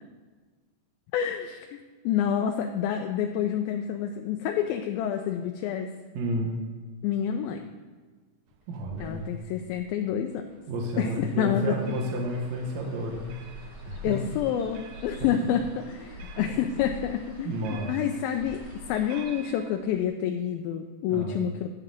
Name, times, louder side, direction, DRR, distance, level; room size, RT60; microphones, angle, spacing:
voice 1, 1.1-1.8 2.0-5.9 7.0-7.7 9.0-10.4 11.0-12.0 14.0-18.6 18.9-21.7, left 9 dB, 85° left, 5 dB, 2.3 m, -28 dB
voice 2, 6.1-6.6 8.7-9.3 10.7-14.2 15.4-15.5 16.3-16.5 17.4-18.0 21.1-21.4, right 1 dB, 65° right, -1 dB, 1.9 m, -31 dB
sound 1, 8.5-20.0, right 1 dB, 90° right, 2.5 m, -46 dB
sound 2, 11.8-19.4, equal, 40° right, 0.9 m, -53 dB
10.5 x 3.8 x 7.6 m, 1.4 s
omnidirectional pair, 4.2 m